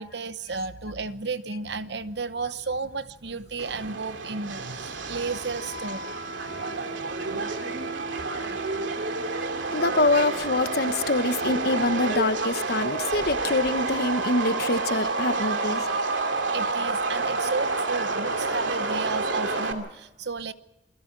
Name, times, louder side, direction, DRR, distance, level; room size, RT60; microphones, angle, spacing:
voice 1, 0.0-6.1 8.4-8.9 16.5-20.5, right 4 dB, 60° right, 13 dB, 0.9 m, -33 dB
Subway metro underground, 3.6-19.7, right 3 dB, 80° right, 2.6 m, -29 dB
voice 2, 9.7-15.9, left 2 dB, 50° left, 10 dB, 1.2 m, -25 dB
28.0 x 21.5 x 4.8 m, 0.96 s
head